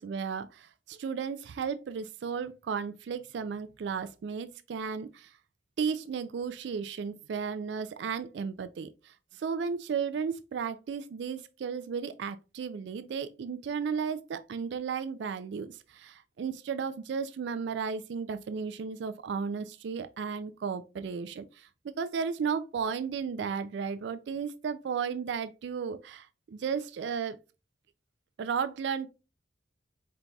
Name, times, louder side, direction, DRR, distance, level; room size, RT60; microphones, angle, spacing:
voice 1, 0.0-5.3 5.8-27.4 28.4-29.1, right 6 dB, 65° right, 0.3 m, -34 dB
4.5 x 3.9 x 2.2 m
head